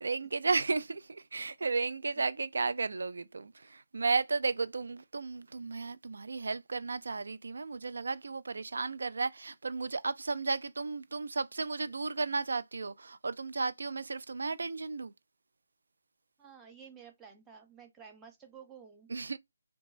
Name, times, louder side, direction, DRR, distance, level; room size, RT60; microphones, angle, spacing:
voice 1, 0.0-15.1 19.1-19.4, right 4 dB, 65° right, 0.4 m, -34 dB
voice 2, 16.4-19.1, right 7 dB, 10° right, 0.5 m, -52 dB
2.9 x 2.2 x 2.5 m
figure-of-eight pair, 155°, 0 cm